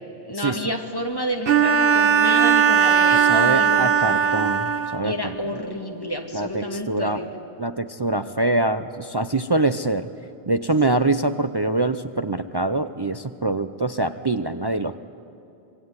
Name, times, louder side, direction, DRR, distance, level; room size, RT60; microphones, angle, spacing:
voice 1, 0.2-4.2 5.0-7.3, equal, 20° left, 2 dB, 2.5 m, -29 dB
Bowed string instrument, 1.5-5.2, right 7 dB, 65° right, 1.1 m, -18 dB
voice 2, 3.1-5.1 6.3-7.2 7.6-10.1 10.5-15.0, right 2 dB, 30° right, 9 dB, 0.5 m, -24 dB
25.5 x 21.5 x 9.6 m, 2.7 s
omnidirectional pair, 1.1 m